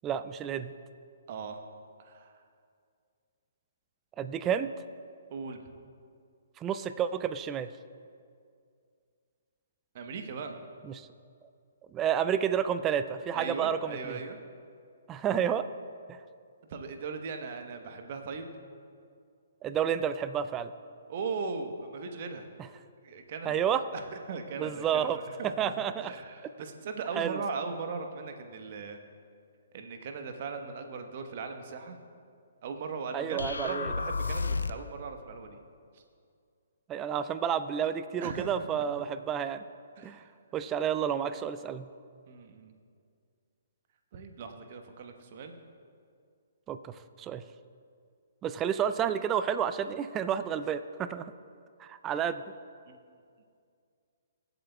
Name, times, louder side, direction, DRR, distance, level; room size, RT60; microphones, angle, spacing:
voice 1, 0.0-0.7 4.2-4.7 6.6-7.7 10.9-11.1 11.9-14.2 15.1-15.7 19.6-20.7 23.5-23.8 24.6-25.2 25.4-26.1 27.2-27.4 33.1-33.9 36.9-39.6 40.0-40.2 40.5-41.9 46.7-47.4 48.4-51.3 51.8-52.4, right 8 dB, 20° right, 12 dB, 0.4 m, -30 dB
voice 2, 1.3-1.6 2.0-2.4 5.3-5.6 9.9-10.6 13.3-14.4 16.7-18.5 21.1-22.5 23.0-23.6 23.9-29.0 29.7-32.0 32.6-35.6 35.9-36.0 38.2-38.9 40.0-40.3 42.3-42.7 44.1-45.5 52.9-53.0, right 4 dB, 45° right, 5 dB, 1.1 m, -39 dB
sound 1, 33.4-35.0, left 4 dB, 75° left, 0.4 m, -32 dB
23.0 x 8.1 x 2.3 m, 2.3 s
figure-of-eight pair, 130°, 0 cm